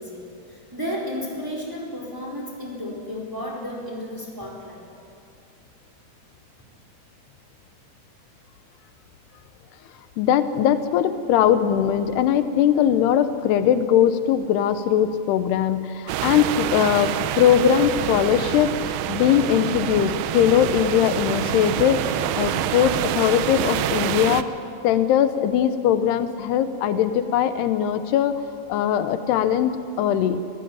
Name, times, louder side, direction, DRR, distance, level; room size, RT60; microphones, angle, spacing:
voice 1, 0.0-4.8, left 1 dB, 5° right, -2 dB, 3.9 m, -33 dB
voice 2, 10.2-22.0 22.4-24.4 24.8-28.4 28.7-30.4, left 9 dB, 85° left, 11 dB, 3.0 m, -20 dB
sound 1, 16.1-24.4, right 12 dB, 80° right, 2.7 m, -26 dB
25.5 x 15.5 x 8.7 m, 2.6 s
omnidirectional pair, 4.6 m